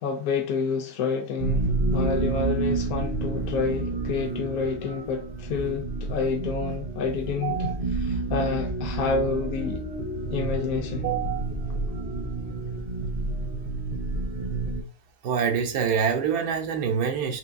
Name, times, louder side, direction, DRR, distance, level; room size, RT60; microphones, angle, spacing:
voice 1, 0.0-9.8 10.3-11.1, left 5 dB, 70° left, 1.0 m, -29 dB
sound 1, 1.4-14.8, right 2 dB, 40° right, 0.6 m, -29 dB
voice 2, 7.4-7.7 11.0-11.4 15.2-17.4, right 7 dB, 90° right, 1.3 m, -26 dB
4.8 x 3.1 x 2.6 m
omnidirectional pair, 1.6 m